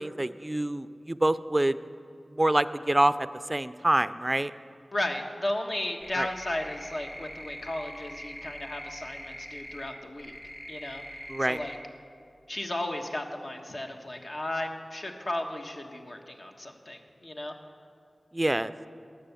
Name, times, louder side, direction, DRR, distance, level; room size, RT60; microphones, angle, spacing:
voice 1, 0.0-1.8 2.3-3.1 3.5-4.5 6.2-6.3 11.3-11.6 18.3-18.7, right 1 dB, 25° right, 14 dB, 0.4 m, -26 dB
voice 2, 4.9-10.3 10.7-11.0 11.4-11.8 12.5-17.5, left 1 dB, 55° left, 3 dB, 1.2 m, -34 dB
sound 1, 6.0-9.9 10.2-11.8, equal, 15° left, 1.6 m, -43 dB
18.0 x 6.9 x 6.9 m, 2.5 s
wide cardioid pair, 70°, 0 cm